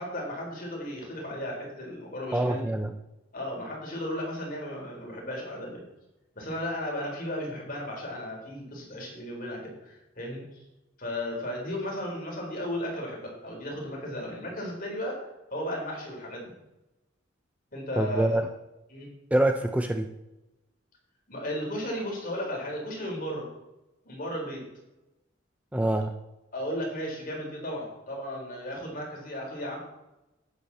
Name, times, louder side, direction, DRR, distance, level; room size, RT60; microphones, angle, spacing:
voice 1, 0.0-2.7 3.3-5.8 6.4-10.4 11.0-16.5 17.7-18.5 18.9-19.1 21.3-23.5 24.0-24.6 26.5-29.8, equal, 45° left, -1 dB, 4.3 m, -35 dB
voice 2, 2.3-2.9 18.0-18.4 19.3-20.1 25.7-26.1, right 1 dB, 5° right, 5 dB, 0.5 m, -25 dB
11.5 x 9.6 x 4.3 m, 0.95 s
head